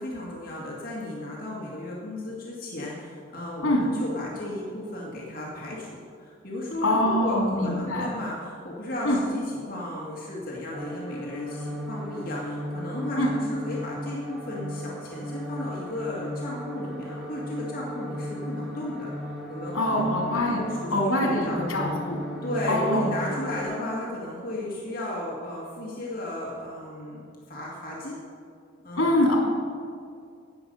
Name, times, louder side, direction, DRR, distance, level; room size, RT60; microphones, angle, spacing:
voice 1, 0.0-13.2 13.5-19.1 19.5-20.1 20.4-21.9 22.4-28.2 28.8-29.2, left 1 dB, 45° left, -5 dB, 2.2 m, -34 dB
voice 2, 6.8-8.1 9.0-9.2 13.2-13.3 19.7-20.6 20.9-22.2 22.7-23.2 29.0-29.4, left 1 dB, 75° left, -1 dB, 3.2 m, -24 dB
sound 1, 10.7-23.6, equal, ahead, 1.6 m, -36 dB
17.5 x 7.0 x 5.4 m, 2.3 s
head